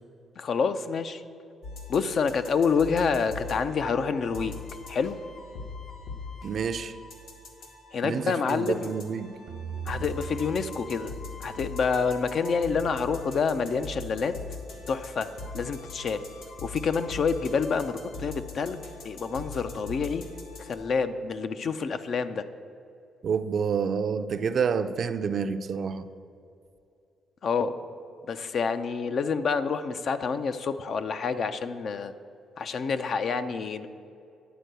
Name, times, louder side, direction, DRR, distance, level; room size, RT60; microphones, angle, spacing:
voice 1, 0.4-1.2 1.9-4.6 4.9-5.2 7.9-8.9 9.9-11.1 11.4-14.3 14.9-15.3 15.5-16.2 16.6-20.2 20.6-22.4 27.4-27.8 28.3-32.1 32.6-33.9, left 5 dB, 55° left, 0.5 m, -28 dB
sound 1, 1.6-20.7, left 4 dB, 75° left, 1.3 m, -42 dB
voice 2, 6.4-7.0 8.0-9.3 23.2-26.1, right 6 dB, 55° right, 0.4 m, -28 dB
sound 2, 9.5-12.7, right 6 dB, 75° right, 0.9 m, -40 dB
10.0 x 4.5 x 7.9 m
cardioid pair, 90°, 0 cm